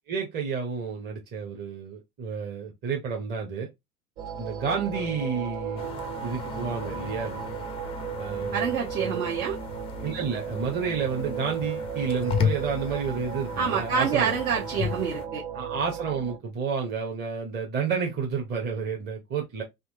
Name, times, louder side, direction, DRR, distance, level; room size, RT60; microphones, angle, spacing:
voice 1, 0.1-3.7 4.4-5.9 6.2-7.4 8.2-9.2 10.0-14.4 15.5-19.6, right 6 dB, 20° right, 0.7 m, -30 dB
sound 1, 4.2-16.4, right 7 dB, 55° right, 1.5 m, -35 dB
sound 2, 5.8-15.3, left 8 dB, 15° left, 0.3 m, -35 dB
voice 2, 8.5-9.6 13.6-15.4, right 6 dB, 70° right, 1.0 m, -27 dB
3.6 x 2.7 x 2.6 m
figure-of-eight pair, 80°, 45 cm